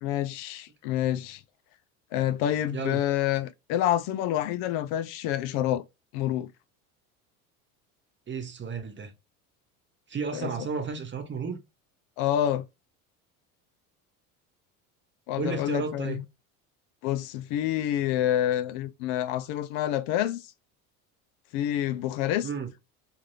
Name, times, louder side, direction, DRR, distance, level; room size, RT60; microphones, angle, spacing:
voice 1, 0.0-1.4 2.1-5.8 6.1-6.5 10.3-10.5 12.2-12.7 15.3-16.2 17.0-20.4 21.5-22.5, left 12 dB, 60° left, 0.5 m, -28 dB
voice 2, 2.7-3.0 8.3-9.1 10.1-11.6 15.4-16.2 22.4-22.7, right 5 dB, 25° right, 0.9 m, -33 dB
3.2 x 2.5 x 2.6 m
hypercardioid pair, 80°, 43 cm